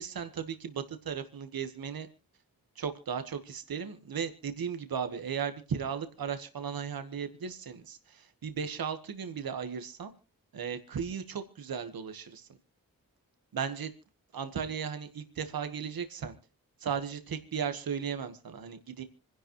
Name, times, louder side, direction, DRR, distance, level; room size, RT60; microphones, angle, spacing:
voice 1, 0.0-2.1 2.8-10.1 10.5-12.5 13.5-13.9 14.3-16.4 16.8-19.0, right 7 dB, 85° right, 9 dB, 1.4 m, -36 dB
26.0 x 11.0 x 3.1 m, 0.33 s
cardioid pair, 65°, 35 cm